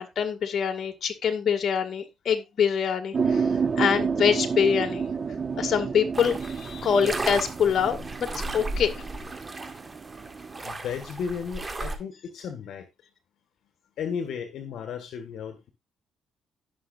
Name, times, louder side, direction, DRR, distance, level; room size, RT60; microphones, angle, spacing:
voice 1, 0.0-5.1 5.5-8.9, left 7 dB, 55° left, 2.1 m, -25 dB
sound 1, 3.1-10.6, right 5 dB, 40° right, 1.4 m, -30 dB
sound 2, 6.1-12.0, right 2 dB, 25° right, 1.9 m, -35 dB
voice 2, 10.6-12.8 14.0-15.7, left 7 dB, 75° left, 1.7 m, -34 dB
17.0 x 6.3 x 2.6 m
cardioid pair, 90°, 0 cm